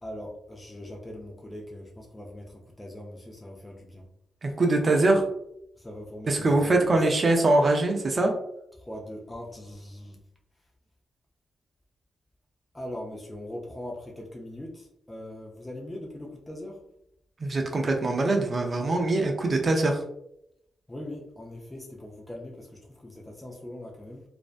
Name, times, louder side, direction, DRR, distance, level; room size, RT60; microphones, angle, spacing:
voice 1, 0.0-4.1 5.8-6.9 8.8-10.2 12.7-16.8 20.9-24.2, left 1 dB, 20° left, -1 dB, 0.5 m, -41 dB
voice 2, 4.4-5.3 6.3-8.3 17.4-20.0, right 2 dB, 45° right, 2 dB, 0.5 m, -23 dB
2.5 x 2.1 x 2.4 m, 0.77 s
supercardioid pair, 50°, 0 cm